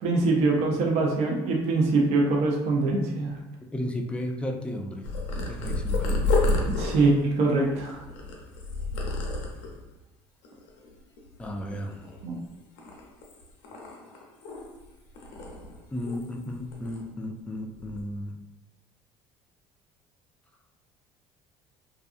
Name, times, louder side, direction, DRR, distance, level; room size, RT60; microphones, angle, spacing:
voice 1, 0.0-3.3 6.8-8.0 12.2-12.4, right 3 dB, 70° right, -1 dB, 0.5 m, -23 dB
voice 2, 3.7-5.0 5.5-6.2 11.4-12.0 15.9-18.3, left 1 dB, 10° left, 3 dB, 0.3 m, -34 dB
Purr, 5.0-9.9 10.4-10.9 11.2-12.4 12.8-14.9 15.1-16.4 16.7-17.0 17.7-18.0, left 2 dB, 85° left, 0.5 m, -30 dB
2.5 x 2.4 x 2.4 m, 0.96 s
supercardioid pair, 100°, 12 cm